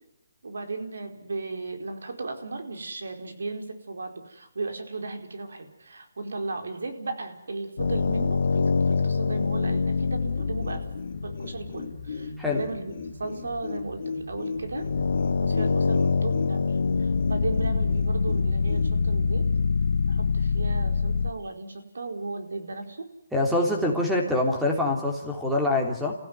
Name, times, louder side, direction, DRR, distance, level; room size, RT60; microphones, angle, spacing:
voice 1, 0.4-10.8 11.2-12.9 13.2-14.9 15.4-19.4 20.1-23.1, right 3 dB, 85° right, 5 dB, 4.7 m, -35 dB
sound 1, 7.8-11.9 14.6-21.3, left 4 dB, 75° left, 1.3 m, -25 dB
Humming Magical Orb, 10.4-19.0, left 4 dB, 50° left, 4.7 m, -37 dB
voice 2, 23.3-26.1, left 2 dB, 5° right, 0 dB, 3.3 m, -25 dB
29.5 x 15.5 x 9.6 m, 0.85 s
hypercardioid pair, 165°, 0 cm